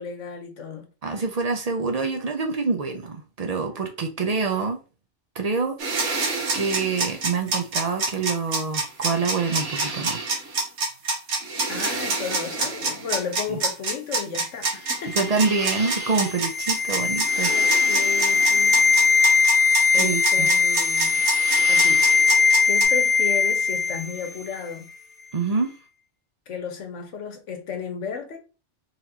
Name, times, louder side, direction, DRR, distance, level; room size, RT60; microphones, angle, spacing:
voice 1, 0.0-0.9 11.7-15.3 17.4-19.2 19.9-21.2 21.7-22.0 22.6-24.9 26.5-28.4, left 7 dB, 85° left, 1.2 m, -33 dB
voice 2, 1.0-4.8 5.4-5.8 6.5-10.2 13.5-13.6 15.1-17.5 19.9-20.5 25.3-25.7, right 4 dB, 45° right, 0.5 m, -26 dB
sound 1, 5.8-22.8, right 3 dB, 90° right, 1.3 m, -27 dB
sound 2, 15.1-24.3 24.6-24.7, left 5 dB, 55° left, 0.9 m, -20 dB
4.0 x 2.9 x 2.8 m
omnidirectional pair, 1.2 m